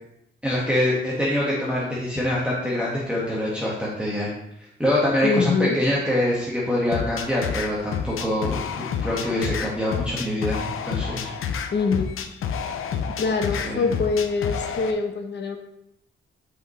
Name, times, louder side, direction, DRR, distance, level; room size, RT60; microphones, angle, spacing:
voice 1, 0.4-4.3 4.8-11.3 13.5-13.8, left 1 dB, 5° right, -6 dB, 1.8 m, -25 dB
voice 2, 5.2-5.8 11.7-12.2 13.2-15.6, left 4 dB, 60° left, 4 dB, 1.0 m, -24 dB
sound 1, 6.9-14.9, left 7 dB, 85° left, 0.7 m, -29 dB
7.9 x 5.5 x 3.3 m, 0.80 s
cardioid pair, 100°, 21 cm